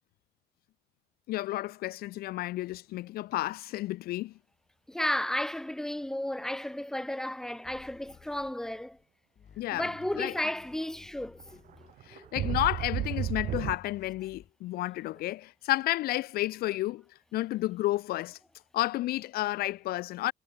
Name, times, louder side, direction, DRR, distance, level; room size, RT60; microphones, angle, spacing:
voice 1, 1.3-4.3 9.6-9.9 10.2-10.3 12.1-17.0 17.3-18.4 18.7-20.3, left 16 dB, 65° left, 0.4 m, -31 dB
voice 2, 4.9-9.0 9.7-12.3, left 1 dB, 5° left, 0.9 m, -33 dB
sound 1, 7.6-9.0 9.4-12.2 12.8-14.5, left 8 dB, 45° left, 6.0 m, -56 dB
sound 2, 11.4-11.5 11.9-13.8, right 12 dB, 55° right, 0.5 m, -32 dB
cardioid pair, 110°, 17 cm